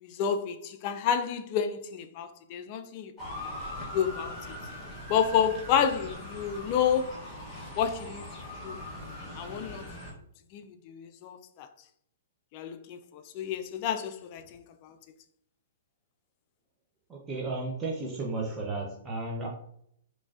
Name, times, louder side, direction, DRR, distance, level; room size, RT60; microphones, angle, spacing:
voice 1, 0.0-3.4 3.9-4.4 5.1-7.2 7.8-8.2 8.6-8.8 9.3-9.8 10.5-11.7 12.5-15.0, left 8 dB, 35° left, 0.4 m, -30 dB
Motor vehicle (road) / Siren, 3.2-10.1, left 1 dB, 10° left, 0.9 m, -41 dB
voice 2, 17.1-19.5, right 3 dB, 15° right, 0.6 m, -33 dB
3.9 x 3.1 x 2.4 m
hypercardioid pair, 150°, 0 cm